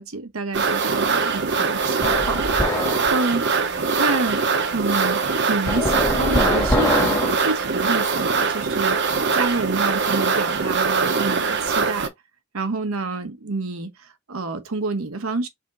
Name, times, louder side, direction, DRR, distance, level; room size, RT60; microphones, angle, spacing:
voice 1, 0.0-3.4 4.0-4.4 4.7-12.1 12.5-15.5, right 3 dB, 85° right, 1.0 m, -28 dB
sound 1, 0.5-12.1, right 5 dB, 55° right, 0.8 m, -22 dB
sound 2, 2.0-3.1 5.7-7.4, left 1 dB, 15° left, 1.4 m, -23 dB
5.0 x 3.7 x 2.9 m
head